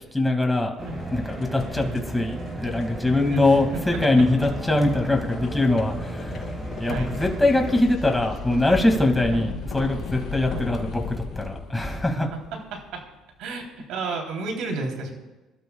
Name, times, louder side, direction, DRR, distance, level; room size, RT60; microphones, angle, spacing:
voice 1, 0.1-0.7 1.1-1.8 2.1-6.4 6.8-12.3, left 2 dB, 10° left, 2 dB, 2.3 m, -22 dB
sound 1, 0.8-7.8, right 1 dB, 25° right, 3.8 m, -34 dB
sound 2, 1.0-13.1, left 4 dB, 55° left, 5.1 m, -37 dB
voice 2, 1.7-2.1 3.3-3.4 3.9-4.2 6.8-7.1 9.3-9.5 10.5-10.6 11.8-12.0 12.3-13.0 13.4-13.6 13.9-15.1, right 4 dB, 80° right, 2 dB, 3.4 m, -32 dB
26.5 x 12.5 x 2.4 m, 1.1 s
cardioid pair, 110°, 0 cm